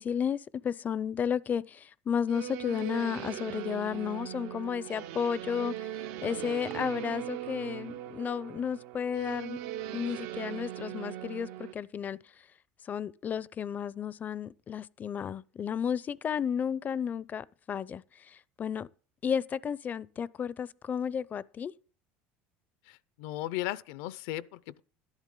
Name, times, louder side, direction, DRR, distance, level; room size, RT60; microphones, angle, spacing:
voice 1, 0.0-5.9 6.2-9.6 9.9-12.2 12.8-18.9 19.2-21.7, left 7 dB, 30° left, 0.5 m, -33 dB
sound 1, 2.3-11.7, right 12 dB, 70° right, 0.8 m, -39 dB
voice 2, 22.9-24.8, left 15 dB, 75° left, 0.6 m, -36 dB
12.0 x 10.5 x 3.8 m
supercardioid pair, 110°, 5 cm